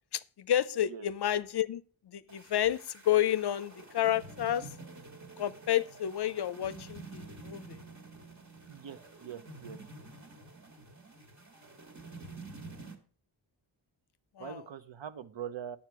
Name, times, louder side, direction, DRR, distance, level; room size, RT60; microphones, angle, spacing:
voice 1, 0.1-4.7 5.4-7.8 14.4-14.6, left 11 dB, 60° left, 0.5 m, -30 dB
sound 1, 2.3-12.9, right 3 dB, 35° right, 1.8 m, -49 dB
voice 2, 8.7-9.8 14.4-15.8, right 8 dB, 70° right, 0.8 m, -43 dB
9.2 x 7.3 x 4.7 m
wide cardioid pair, 100°, 46 cm